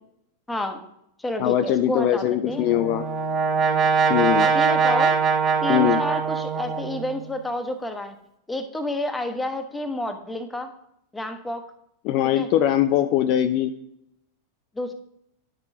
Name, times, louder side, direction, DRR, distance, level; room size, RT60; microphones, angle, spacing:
voice 1, 0.5-0.8 1.2-2.7 4.4-5.2 5.6-8.1 8.5-10.7 11.1-11.6 12.3-12.5 14.7-14.9, left 1 dB, 10° left, 7 dB, 0.8 m, -29 dB
voice 2, 1.4-3.0 4.1-4.5 5.7-6.0 12.0-13.7, left 11 dB, 40° left, 9 dB, 0.3 m, -21 dB
Brass instrument, 2.5-7.2, right 5 dB, 25° right, 0.8 m, -22 dB
10.5 x 6.2 x 2.7 m, 0.79 s
figure-of-eight pair, 90°, 0 cm